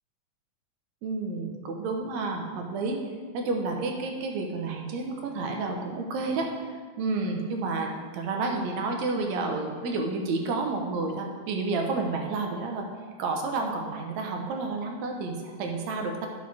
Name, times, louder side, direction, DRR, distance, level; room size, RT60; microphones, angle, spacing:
voice 1, 1.0-3.0 3.3-6.5 7.0-12.9 13.2-16.3, right 3 dB, 70° right, 2 dB, 2.1 m, -30 dB
9.5 x 6.5 x 4.1 m, 1.5 s
omnidirectional pair, 3.5 m